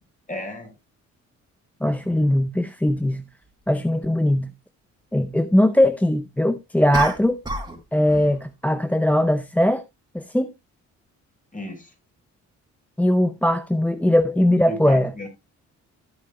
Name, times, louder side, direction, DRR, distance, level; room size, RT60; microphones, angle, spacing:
voice 1, 0.3-0.7 11.5-11.9 14.7-15.3, left 1 dB, 25° left, 5.9 m, -33 dB
voice 2, 1.8-3.2 3.7-4.5 5.1-7.4 7.9-9.8 10.1-10.5 13.0-15.1, left 1 dB, 5° left, 0.7 m, -20 dB
sound 1, 2.9-3.0 6.9-7.8 8.1-8.4, right 1 dB, 15° right, 3.8 m, -29 dB
14.5 x 8.6 x 2.2 m
cardioid pair, 90°, 30 cm